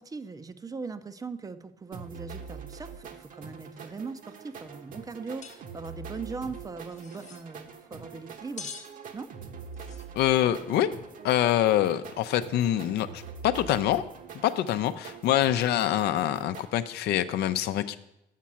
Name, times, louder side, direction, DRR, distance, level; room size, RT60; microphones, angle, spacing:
voice 1, 0.0-8.7 9.1-9.3, right 4 dB, 20° right, 12 dB, 0.5 m, -40 dB
sound 1, 1.9-16.7, right 6 dB, 55° right, 1.0 m, -44 dB
sound 2, 5.4-5.6 5.8-5.9 6.8-7.4 8.6-8.9 9.7-10.1, left 5 dB, 45° left, 1.2 m, -43 dB
voice 2, 10.2-10.9 11.2-14.0 14.4-18.0, left 12 dB, 75° left, 11 dB, 0.6 m, -25 dB
7.4 x 5.7 x 7.4 m, 0.85 s
cardioid pair, 110°, 17 cm